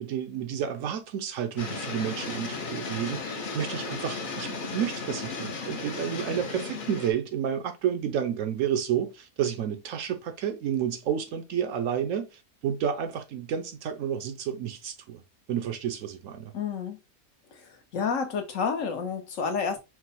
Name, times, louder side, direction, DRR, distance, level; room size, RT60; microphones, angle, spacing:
voice 1, 0.0-15.2 15.5-16.5, right 9 dB, 70° right, 0.9 m, -30 dB
sound 1, 1.6-7.1, left 4 dB, 45° left, 0.7 m, -35 dB
voice 2, 16.5-17.0 17.5-17.7 17.9-19.8, left 6 dB, 65° left, 1.1 m, -29 dB
4.6 x 2.1 x 4.1 m
omnidirectional pair, 1.5 m